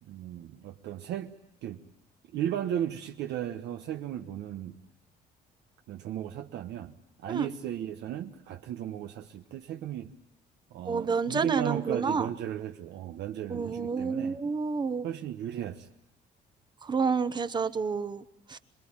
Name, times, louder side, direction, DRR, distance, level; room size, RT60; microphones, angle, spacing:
voice 1, 0.0-1.3 1.6-1.8 2.3-4.8 5.9-6.9 7.2-10.1 10.7-14.4 15.0-15.9, right 11 dB, 75° right, 5 dB, 1.2 m, -35 dB
voice 2, 10.8-12.3 13.5-15.0 16.8-18.6, right 5 dB, 25° right, 12 dB, 1.0 m, -29 dB
26.5 x 21.5 x 8.8 m, 0.89 s
cardioid pair, 155°, 18 cm